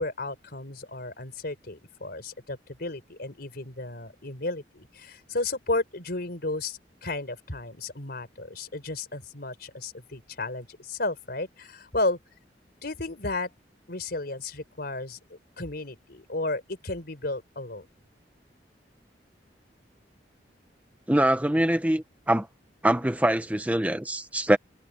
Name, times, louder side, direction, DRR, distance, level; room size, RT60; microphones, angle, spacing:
voice 1, 0.0-12.2 12.8-13.5 13.9-17.9, left 2 dB, 60° left, 4.2 m, -33 dB
voice 2, 21.1-22.5 22.8-24.6, right 1 dB, 10° right, 0.9 m, -24 dB
head